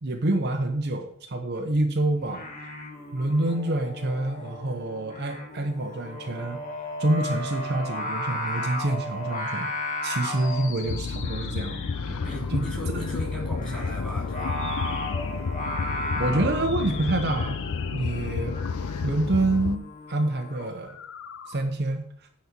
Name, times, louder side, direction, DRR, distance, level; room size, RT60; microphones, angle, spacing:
voice 1, 0.0-2.5 3.1-6.6 7.0-9.7 10.0-12.2 12.5-12.6 12.9-13.0 16.2-17.6 17.9-18.6 19.0-21.0 21.5-22.0, right 2 dB, 50° right, 4 dB, 0.8 m, -27 dB
Singing, 2.2-20.7, left 1 dB, 40° left, 1.9 m, -36 dB
sound 1, 10.3-12.4 14.4-15.5 16.5-18.7 20.7-21.6, left 8 dB, 60° left, 0.8 m, -43 dB
sound 2, 10.8-19.8, left 5 dB, 85° left, 0.5 m, -31 dB
voice 2, 12.2-14.6, right 1 dB, 5° left, -3 dB, 3.2 m, -36 dB
9.4 x 4.3 x 7.4 m, 0.66 s
head